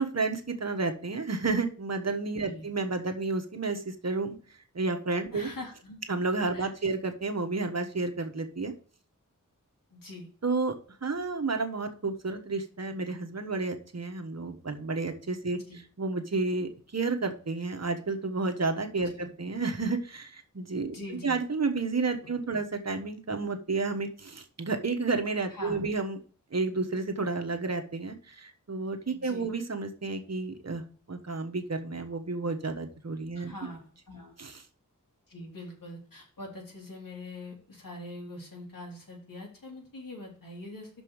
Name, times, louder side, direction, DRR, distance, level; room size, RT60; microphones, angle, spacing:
voice 1, 0.0-4.4 4.7-5.5 6.1-8.7 10.4-10.7 11.0-26.2 26.5-30.8 31.1-33.5 34.4-34.6, right 3 dB, 55° right, 5 dB, 1.3 m, -31 dB
voice 2, 5.3-6.0 6.5-6.9 9.9-10.3 15.7-15.8 19.1-19.3 20.9-21.4 22.5-22.6 25.5-25.9 29.1-29.5 33.4-34.3 35.3-40.9, left 1 dB, 90° left, -1 dB, 3.5 m, -43 dB
6.3 x 5.3 x 6.4 m, 0.43 s
wide cardioid pair, 75°, 33 cm